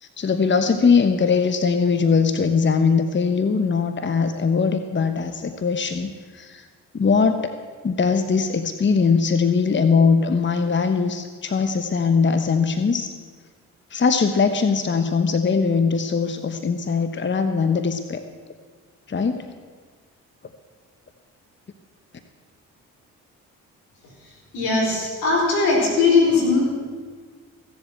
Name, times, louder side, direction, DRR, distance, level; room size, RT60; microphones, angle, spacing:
voice 1, 0.0-6.6 6.9-7.5 7.8-13.1 13.9-18.2 19.1-19.4, left 5 dB, 30° left, 9 dB, 1.0 m, -21 dB
voice 2, 24.5-26.8, left 3 dB, 80° left, -2 dB, 4.6 m, -19 dB
16.0 x 7.9 x 7.7 m, 1.5 s
supercardioid pair, 55°, 36 cm